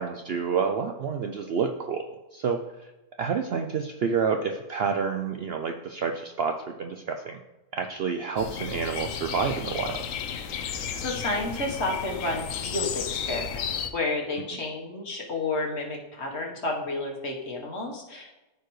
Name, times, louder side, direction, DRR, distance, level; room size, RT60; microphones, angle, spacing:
voice 1, 0.0-2.1 2.3-2.9 3.2-7.4 7.7-10.0, right 6 dB, 90° right, 5 dB, 0.5 m, -29 dB
sound 1, 8.4-13.9, left 8 dB, 65° left, 0.9 m, -33 dB
voice 2, 10.7-18.4, left 2 dB, 45° left, 0 dB, 1.5 m, -31 dB
13.5 x 4.6 x 3.1 m, 1.0 s
omnidirectional pair, 1.7 m